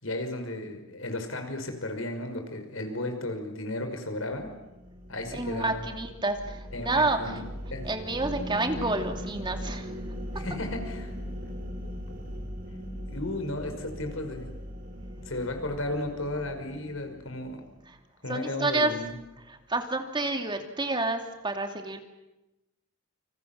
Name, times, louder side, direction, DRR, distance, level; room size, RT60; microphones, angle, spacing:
voice 1, 0.0-4.5 5.1-5.8 6.7-7.4 7.7-7.9 10.3-11.1 13.1-14.5 15.3-17.6 18.2-19.2, left 1 dB, 85° left, 6 dB, 5.6 m, -34 dB
sound 1, 4.4-17.9, equal, 45° right, 5.1 m, -39 dB
voice 2, 5.3-7.4 7.8-9.9 18.3-18.9 19.5-22.0, right 2 dB, 25° right, 5 dB, 2.7 m, -29 dB
29.5 x 27.0 x 7.4 m, 0.99 s
head